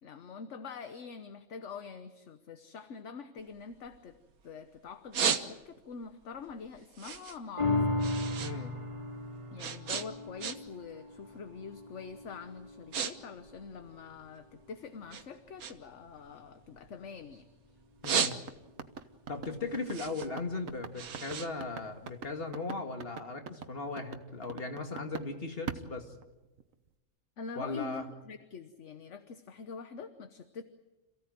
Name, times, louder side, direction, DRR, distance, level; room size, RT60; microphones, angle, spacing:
voice 1, 0.0-4.2 4.4-7.8 9.5-17.5 27.4-30.6, left 5 dB, 60° left, 9 dB, 1.3 m, -45 dB
sound 1, 3.4-4.5 4.9-5.9 6.3-8.6 8.8-10.9 11.2-11.5 12.1-12.3 12.6-13.1 13.4-14.6 15.1-17.4 17.8-18.8 19.3-22.4, right 7 dB, 85° right, 1.7 m, -35 dB
sound 2, 7.6-14.2 14.7-14.8, left 2 dB, 20° right, 2.9 m, -36 dB
voice 2, 8.4-8.8 18.0-18.4 19.3-26.1 27.6-28.0, left 3 dB, 40° left, 5 dB, 2.3 m, -37 dB
sound 3, 18.0-25.3 25.7-26.7, right 7 dB, 70° right, 1.5 m, -42 dB
27.0 x 16.0 x 9.3 m, 1.1 s
omnidirectional pair, 1.5 m